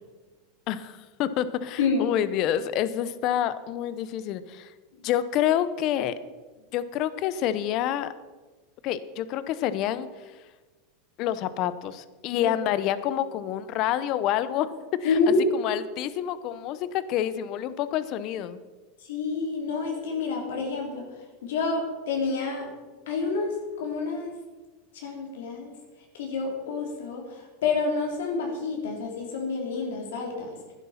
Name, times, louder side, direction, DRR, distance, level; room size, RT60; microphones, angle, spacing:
voice 1, 0.7-4.7 5.0-6.1 6.7-8.1 8.8-10.1 11.2-14.7 15.0-15.2 15.5-18.6, left 11 dB, 50° left, 14 dB, 0.8 m, -28 dB
voice 2, 1.8-2.1 12.4-12.5 15.0-15.4 19.0-21.1 21.4-22.7 23.1-24.3 24.9-25.7 26.1-30.5, left 4 dB, 85° left, 1 dB, 3.1 m, -28 dB
11.5 x 10.0 x 5.8 m, 1.3 s
supercardioid pair, 125°, 0 cm